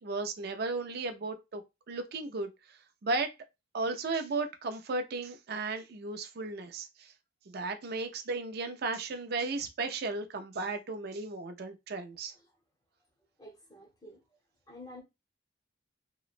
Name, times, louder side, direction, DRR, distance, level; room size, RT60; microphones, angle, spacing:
voice 1, 0.0-1.6 1.9-3.3 3.7-7.1 7.5-12.3, right 3 dB, 55° right, 0.4 m, -35 dB
voice 2, 13.4-14.2 14.7-15.0, left 1 dB, 20° left, 0.8 m, -49 dB
2.9 x 2.0 x 2.4 m
head